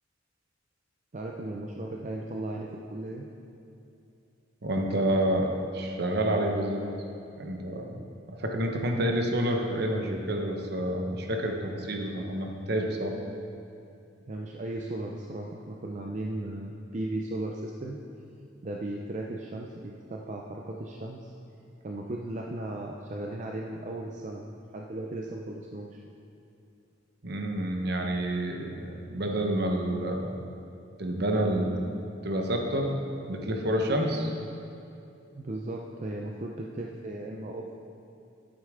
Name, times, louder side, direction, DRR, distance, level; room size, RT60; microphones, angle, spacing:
voice 1, 1.1-3.3 14.3-18.0 18.6-21.3 21.8-26.0 35.3-37.7, right 1 dB, 40° right, 0 dB, 0.5 m, -36 dB
voice 2, 4.6-6.8 7.4-8.0 8.3-13.1 27.2-30.4 31.0-31.8 32.2-32.9 33.3-34.3, right 1 dB, 60° right, 2 dB, 1.1 m, -28 dB
11.0 x 8.9 x 3.7 m, 2.7 s
head